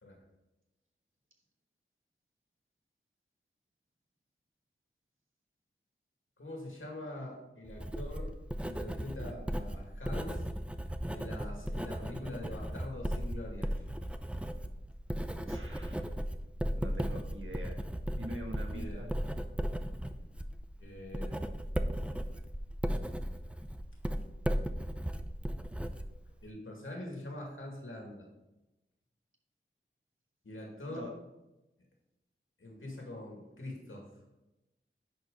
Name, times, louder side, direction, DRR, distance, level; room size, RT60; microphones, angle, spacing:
voice 1, 6.4-8.3 8.6-10.4 11.1-13.7 18.6-19.1 20.1-20.2 20.8-21.4 26.4-28.3 30.4-31.1 32.6-34.1, left 1 dB, 75° left, -1 dB, 2.2 m, -44 dB
Writing, 7.7-26.5, equal, 5° right, 0.5 m, -36 dB
voice 2, 15.5-16.1 16.8-17.8 18.1-19.1 30.9-31.1, equal, 75° right, 2 dB, 1.5 m, -44 dB
10.5 x 4.4 x 3.9 m, 0.98 s
wide cardioid pair, 50°, 21 cm